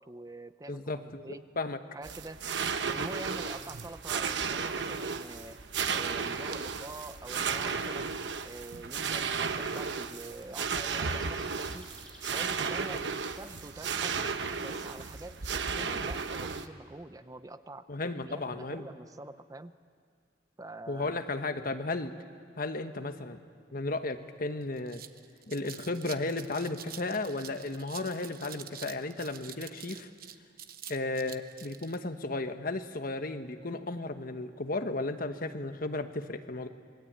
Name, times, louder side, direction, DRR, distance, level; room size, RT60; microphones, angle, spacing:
voice 1, 0.0-1.4 1.9-2.4 2.9-5.6 5.9-8.1 8.4-11.9 12.3-13.1 13.4-14.2 14.6-17.9 18.2-19.7 20.6-21.3, right 2 dB, 20° right, 12 dB, 0.6 m, -45 dB
voice 2, 0.7-1.8 17.9-18.9 20.9-22.1 22.6-23.4 23.7-25.0 25.5-30.1 30.9-36.7, left 2 dB, 50° left, 8 dB, 1.3 m, -34 dB
sound 1, 2.0-16.7, right 5 dB, 75° right, 1.0 m, -34 dB
sound 2, 10.5-12.6, left 1 dB, 5° left, 6.0 m, -54 dB
sound 3, 24.2-24.3 24.6-32.0, right 10 dB, 55° right, 1.0 m, -47 dB
27.0 x 21.5 x 8.9 m, 2.1 s
head